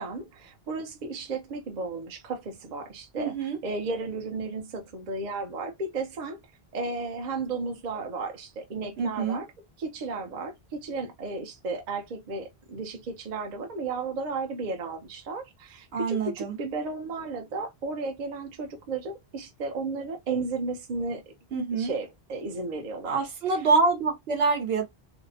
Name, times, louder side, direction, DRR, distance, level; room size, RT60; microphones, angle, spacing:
voice 1, 0.0-6.4 6.7-9.5 9.8-21.3 21.7-23.3, right 3 dB, 50° right, 0.7 m, -34 dB
voice 2, 3.2-3.6 9.0-9.4 15.9-16.6 21.5-21.9 23.0-24.8, right 4 dB, 75° right, 1.0 m, -26 dB
2.6 x 2.0 x 2.6 m
omnidirectional pair, 1.1 m